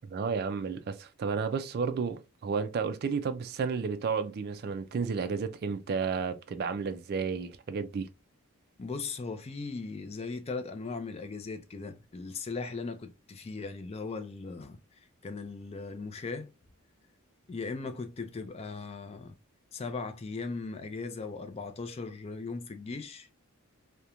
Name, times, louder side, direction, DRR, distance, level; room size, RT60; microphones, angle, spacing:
voice 1, 0.0-8.1, right 5 dB, 45° right, 0.3 m, -32 dB
voice 2, 8.8-16.5 17.5-19.4 19.7-23.3, left 4 dB, 30° left, 0.3 m, -38 dB
2.4 x 2.1 x 2.8 m
head